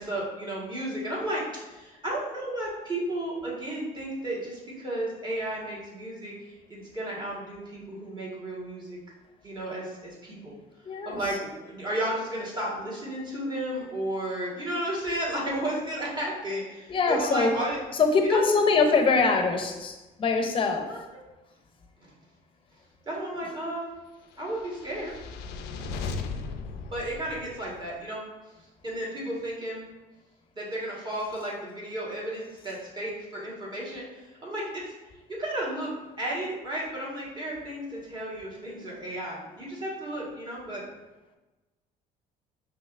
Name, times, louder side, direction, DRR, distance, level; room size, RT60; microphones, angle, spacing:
voice 1, 0.0-6.3 6.7-9.0 9.4-10.5 11.0-17.8 18.2-18.4 20.9-21.0 23.0-24.0 24.4-25.2 26.9-28.2 28.8-29.9 30.5-34.9 35.3-35.9 36.2-40.8, right 1 dB, 25° right, -5 dB, 1.5 m, -33 dB
voice 2, 10.8-11.2 16.9-17.6 17.9-20.9, left 4 dB, 30° left, 4 dB, 0.6 m, -23 dB
sound 1, 24.5-27.9, left 4 dB, 85° left, 0.4 m, -37 dB
5.3 x 3.0 x 2.5 m, 1.1 s
cardioid pair, 110°, 17 cm